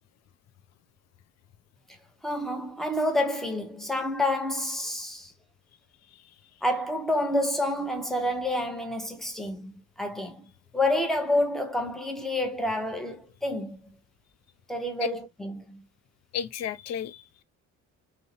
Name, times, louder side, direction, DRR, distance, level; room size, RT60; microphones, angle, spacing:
voice 1, 2.2-5.3 6.6-10.4 10.7-13.9 14.7-15.8, left 1 dB, ahead, 0.6 m, -28 dB
voice 2, 16.3-17.4, left 9 dB, 60° left, 0.4 m, -34 dB
2.5 x 2.0 x 2.7 m
cardioid pair, 90°, 30 cm